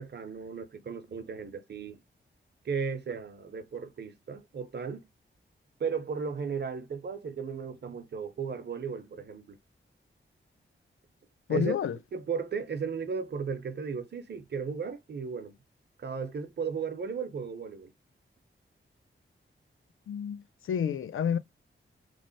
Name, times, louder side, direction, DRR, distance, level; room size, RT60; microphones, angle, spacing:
voice 1, 0.0-2.0 2.6-5.1 5.8-9.6 11.5-11.7 12.1-15.6 16.0-17.9, right 5 dB, 55° right, 0.8 m, -35 dB
voice 2, 11.5-12.0 20.1-20.4 20.7-21.4, left 8 dB, 80° left, 0.4 m, -29 dB
3.2 x 2.1 x 3.9 m
wide cardioid pair, 115°, 21 cm